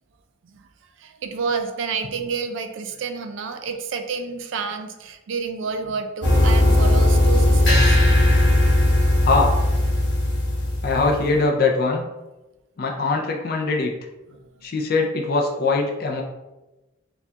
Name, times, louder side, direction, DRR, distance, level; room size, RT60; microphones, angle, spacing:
voice 1, 1.0-8.0 14.6-14.7, right 5 dB, 80° right, 6 dB, 0.4 m, -29 dB
sound 1, 6.2-11.3, left 1 dB, 65° left, 1.1 m, -17 dB
voice 2, 9.2-9.5 10.8-12.0 12.8-13.9 14.6-16.2, left 3 dB, 50° left, 1 dB, 0.4 m, -21 dB
4.3 x 2.3 x 2.7 m, 1.0 s
head